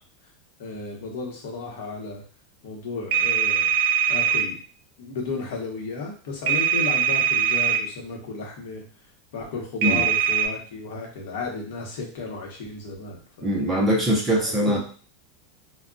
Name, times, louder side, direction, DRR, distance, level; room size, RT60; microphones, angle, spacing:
voice 1, 0.6-2.2 2.6-3.7 4.1-4.6 5.0-8.8 9.3-13.5 14.3-14.8, left 3 dB, 60° left, 0 dB, 1.0 m, -34 dB
sound 1, 3.1-4.5 6.5-7.8 9.8-10.5, right 8 dB, 60° right, 0.6 m, -21 dB
voice 2, 13.4-14.8, equal, 10° right, -3 dB, 0.6 m, -22 dB
2.3 x 2.2 x 3.8 m, 0.41 s
supercardioid pair, 175°, 0 cm